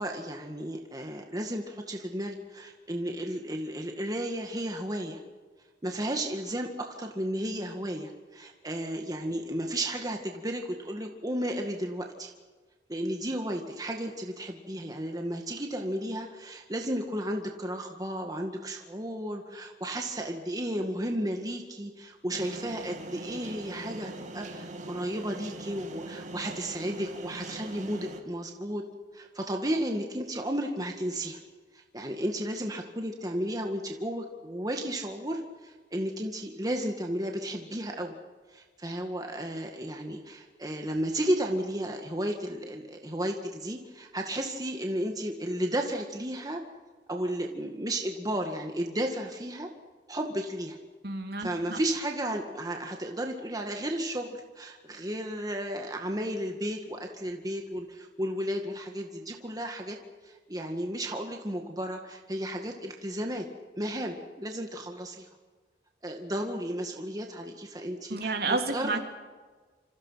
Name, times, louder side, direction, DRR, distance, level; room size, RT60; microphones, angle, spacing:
voice 1, 0.0-5.2 5.8-12.3 12.9-28.8 29.1-31.4 31.7-38.1 38.5-46.6 47.1-49.7 50.1-50.8 51.4-60.0 60.2-63.5 63.8-65.3 66.0-69.0, right 1 dB, 20° right, 3 dB, 1.9 m, -33 dB
sound 1, 22.3-28.2, right 2 dB, 45° right, 2.5 m, -42 dB
voice 2, 51.0-51.8 68.1-69.0, right 3 dB, 60° right, 4 dB, 3.2 m, -30 dB
27.5 x 26.0 x 5.8 m, 1.4 s
head